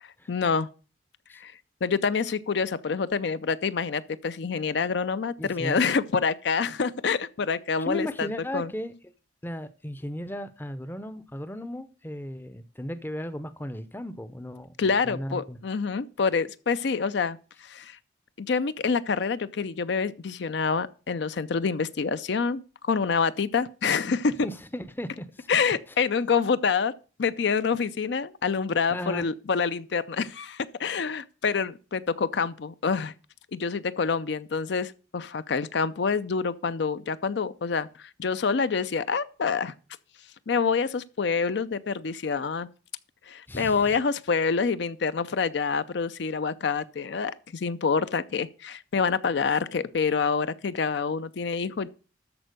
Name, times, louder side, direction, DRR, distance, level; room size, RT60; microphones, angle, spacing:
voice 1, 0.3-0.7 1.3-1.5 1.8-8.3 8.5-8.7 14.8-18.0 18.4-24.4 25.5-26.9 27.2-33.1 33.5-39.7 40.5-42.7 43.3-51.9, left 5 dB, 60° left, 0.5 m, -27 dB
voice 2, 5.4-5.8 7.8-8.9 9.4-15.6 24.4-25.5 28.9-29.3 43.5-44.0, equal, 10° left, 0.5 m, -36 dB
13.0 x 4.4 x 6.6 m
head